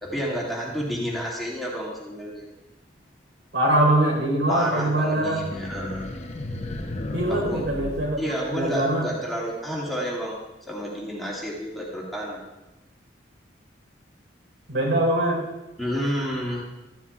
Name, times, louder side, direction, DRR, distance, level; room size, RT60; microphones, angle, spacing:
voice 1, 0.0-2.5 4.5-6.1 7.3-7.6 8.2-10.3 10.7-12.4 15.8-16.6, equal, ahead, -6 dB, 2.1 m, -30 dB
voice 2, 3.5-5.4 7.1-8.2 8.5-9.1 14.7-15.4, right 1 dB, 75° right, -2 dB, 4.2 m, -22 dB
sound 1, 5.5-9.0, left 1 dB, 35° left, 0.8 m, -34 dB
14.5 x 11.5 x 2.4 m, 1.0 s
head